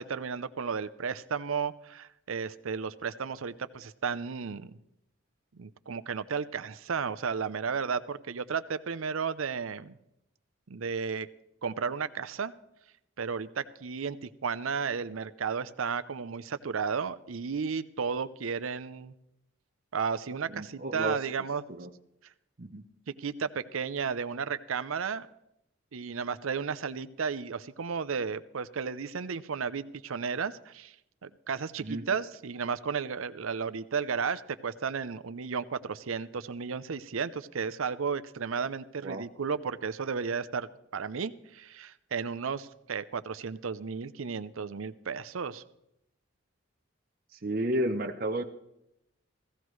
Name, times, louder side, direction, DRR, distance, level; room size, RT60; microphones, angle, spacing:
voice 1, 0.0-4.7 5.5-10.0 10.7-11.3 11.6-12.5 13.2-19.1 19.9-21.6 23.2-25.3 25.9-30.9 31.2-45.6, right 6 dB, 90° right, 14 dB, 0.6 m, -33 dB
voice 2, 20.5-21.2 21.8-21.9 22.6-22.8 31.8-32.0 39.0-39.3 47.3-48.4, right 1 dB, 45° right, 5 dB, 0.7 m, -32 dB
16.0 x 15.0 x 3.1 m, 0.83 s
head